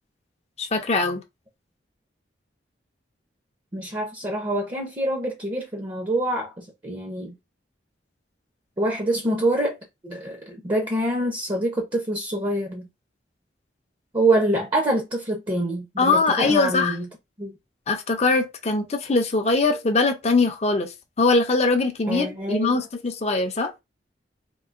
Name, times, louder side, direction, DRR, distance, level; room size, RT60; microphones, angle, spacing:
voice 1, 0.6-1.2 16.0-17.0 17.9-20.9 21.2-23.7, left 3 dB, 35° left, 0.5 m, -22 dB
voice 2, 3.7-7.3 8.8-9.8 10.0-12.8 14.1-17.1 17.4-17.5 22.1-22.8, right 1 dB, 25° right, 0.6 m, -25 dB
3.7 x 2.5 x 2.5 m
head